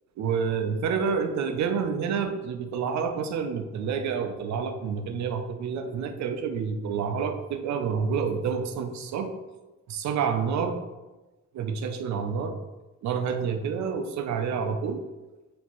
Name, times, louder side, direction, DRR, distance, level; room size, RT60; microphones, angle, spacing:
voice 1, 0.2-9.4 9.9-10.8 11.5-12.6 13.0-15.0, right 6 dB, 70° right, 7 dB, 0.5 m, -28 dB
4.3 x 2.9 x 3.0 m, 1.1 s
cardioid pair, 90°, 30 cm